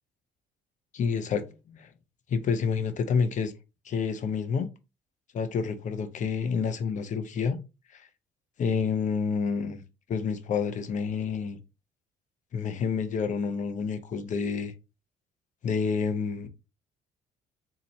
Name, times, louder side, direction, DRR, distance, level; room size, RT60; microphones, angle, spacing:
voice 1, 0.9-1.9 2.3-3.5 3.8-4.7 5.3-7.6 7.9-8.1 8.6-9.8 10.1-11.6 12.5-14.7 15.6-16.5, left 6 dB, 45° left, 0.6 m, -29 dB
4.0 x 2.8 x 3.1 m
cardioid pair, 110°, 17 cm